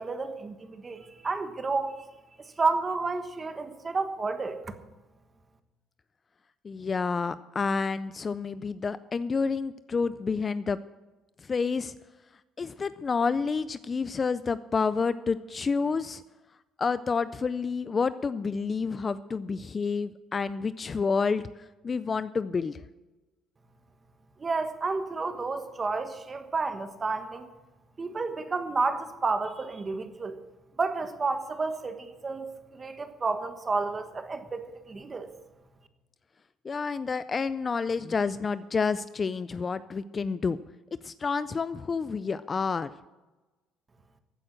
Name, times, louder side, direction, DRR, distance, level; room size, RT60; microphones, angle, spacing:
voice 1, 0.0-1.9 2.6-4.6 24.4-27.4 28.0-30.3 30.8-32.5 32.7-34.6 34.9-35.3, right 3 dB, 25° right, 8 dB, 1.3 m, -30 dB
voice 2, 6.6-10.8 11.5-11.9 12.6-16.2 16.8-21.5 21.8-22.8 36.6-40.6 41.0-42.9, left 5 dB, 25° left, 15 dB, 0.4 m, -29 dB
15.5 x 8.8 x 6.3 m, 1.1 s
cardioid pair, 135°, 0 cm